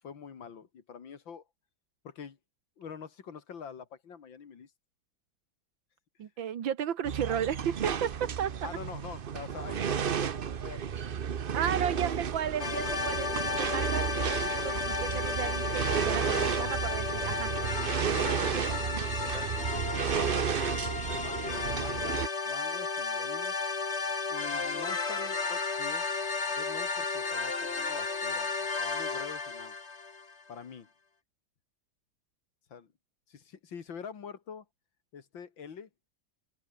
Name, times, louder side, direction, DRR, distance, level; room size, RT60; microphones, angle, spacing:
voice 1, 0.0-1.4 2.0-2.4 2.8-4.7 8.6-11.0 11.9-12.1 13.2-13.3 16.2-16.4 17.7-20.4 21.1-23.6 24.3-26.1 26.5-29.7 30.5-30.9 32.7-32.9 33.3-34.7 35.1-35.9, left 6 dB, 80° left, 2.9 m, -45 dB
voice 2, 6.2-8.8 11.5-17.5, right 9 dB, 80° right, 2.1 m, -34 dB
sound 1, 7.0-22.3, right 8 dB, 60° right, 0.5 m, -32 dB
sound 2, 12.6-30.4, left 4 dB, 35° left, 2.2 m, -33 dB
omnidirectional pair, 2.1 m